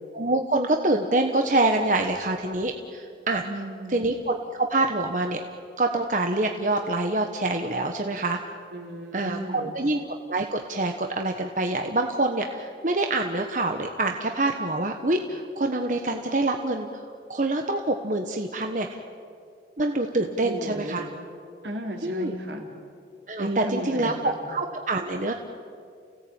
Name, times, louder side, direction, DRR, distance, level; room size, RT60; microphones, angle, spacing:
voice 1, 0.1-3.4 3.9-5.4 5.8-8.4 9.1-10.0 10.3-17.0 17.3-19.0 19.8-21.0 22.0-22.3 23.3-25.3, right 2 dB, 45° right, 4 dB, 1.2 m, -26 dB
voice 2, 3.4-4.0 8.7-9.8 20.4-21.1 21.6-22.7 23.4-24.4, right 1 dB, 80° right, 2 dB, 3.7 m, -34 dB
30.0 x 17.5 x 8.9 m, 2.4 s
head